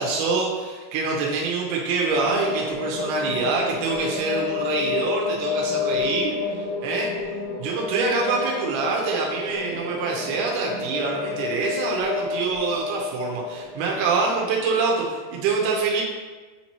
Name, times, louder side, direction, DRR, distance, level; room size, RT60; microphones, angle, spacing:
voice 1, 0.0-6.4 6.8-7.1 7.6-16.0, right 4 dB, 90° right, -2 dB, 2.8 m, -25 dB
sound 1, 2.1-14.6, left 5 dB, 55° left, 2.4 m, -30 dB
8.3 x 3.0 x 4.2 m, 1.3 s
omnidirectional pair, 4.5 m